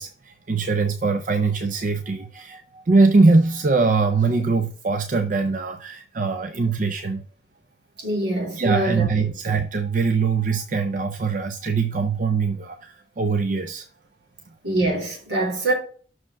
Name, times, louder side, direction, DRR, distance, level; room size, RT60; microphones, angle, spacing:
voice 1, 0.0-7.2 8.6-13.9, right 4 dB, 45° right, 0.5 m, -22 dB
voice 2, 8.0-9.3 14.6-15.7, right 2 dB, 70° right, 3.1 m, -24 dB
6.2 x 4.6 x 5.7 m
head